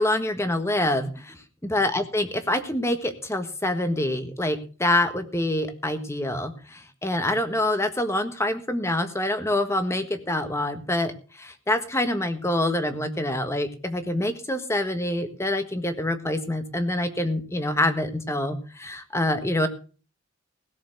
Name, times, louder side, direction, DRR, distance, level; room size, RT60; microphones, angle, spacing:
voice 1, 0.0-1.4 1.7-11.1 11.4-19.7, left 1 dB, 15° left, 8 dB, 1.5 m, -26 dB
17.0 x 7.0 x 6.6 m, 0.37 s
head